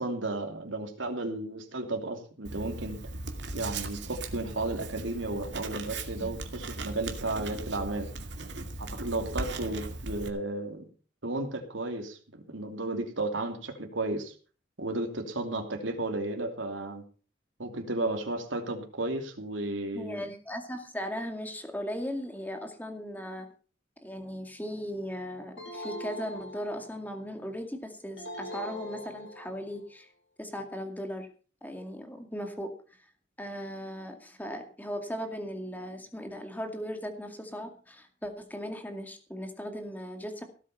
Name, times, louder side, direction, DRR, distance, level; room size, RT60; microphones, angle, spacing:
voice 1, 0.0-3.0 3.5-8.1 8.8-10.8 11.2-14.3 14.8-17.0 17.6-20.2, right 2 dB, 80° right, 4 dB, 2.9 m, -33 dB
Writing, 2.4-10.3, right 2 dB, 65° right, 2.4 m, -38 dB
voice 2, 19.9-23.5 24.0-30.1 30.4-31.3 31.6-32.7 33.4-40.4, equal, 10° left, 5 dB, 2.2 m, -38 dB
sound 1, 25.6-27.1 28.2-29.7, left 1 dB, 65° left, 4.3 m, -41 dB
17.5 x 8.3 x 5.6 m, 0.40 s
head